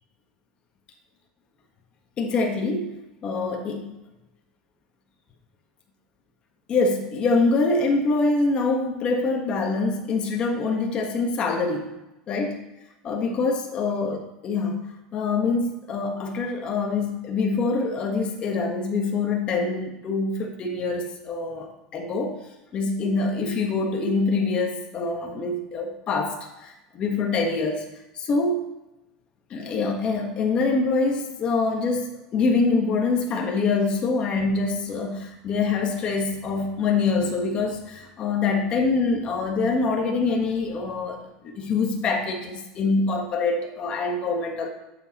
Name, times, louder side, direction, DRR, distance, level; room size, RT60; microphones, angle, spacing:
voice 1, 2.2-3.9 6.7-12.0 12.3-12.6 13.0-22.4 22.7-27.8 28.1-28.7 29.5-32.1 32.3-44.7, left 3 dB, 30° left, 2 dB, 1.3 m, -25 dB
9.9 x 7.3 x 3.0 m, 0.95 s
supercardioid pair, 150°, 3 cm